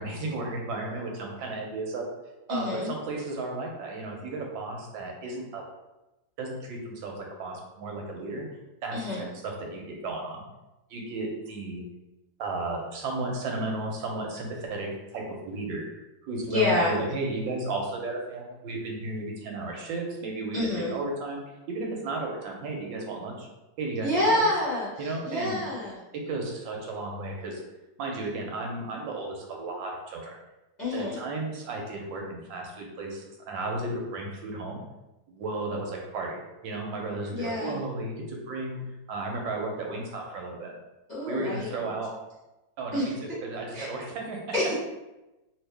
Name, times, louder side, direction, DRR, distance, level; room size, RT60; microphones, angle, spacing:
voice 1, 0.0-2.1 2.5-5.6 6.4-8.5 8.8-10.4 10.9-11.8 12.4-21.4 21.7-23.5 23.8-24.5 25.0-25.6 26.3-27.6 28.0-30.3 30.9-34.8 35.3-38.8 39.1-40.7 41.3-42.1 42.8-44.4, right 2 dB, 80° right, 0 dB, 1.4 m, -34 dB
voice 2, 2.5-2.9 8.9-9.2 16.5-17.0 20.5-21.0 24.0-26.0 30.8-31.2 37.3-37.8 41.1-41.9 42.9-43.4 43.7-43.9 44.5-44.7, left 1 dB, 30° left, -10 dB, 0.8 m, -28 dB
2.9 x 2.7 x 3.3 m, 0.99 s
omnidirectional pair, 2.0 m